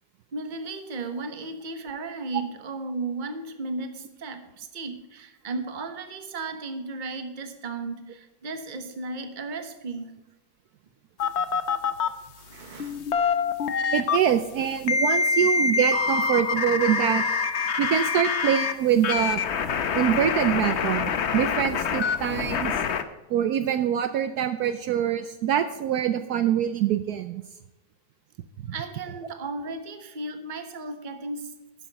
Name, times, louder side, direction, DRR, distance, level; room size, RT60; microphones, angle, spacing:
voice 1, 0.3-10.2 11.2-11.3 12.4-13.0 28.7-31.5, right 3 dB, 30° right, 8 dB, 1.1 m, -35 dB
sound 1, 11.2-12.1 12.8-14.2 14.9-18.7 19.0-23.0, left 5 dB, 55° left, 0.8 m, -25 dB
voice 2, 13.9-17.2 17.8-19.4 19.9-22.7 23.3-27.4, right 10 dB, 70° right, 10 dB, 1.1 m, -24 dB
12.0 x 10.0 x 4.1 m, 1.0 s
omnidirectional pair, 1.9 m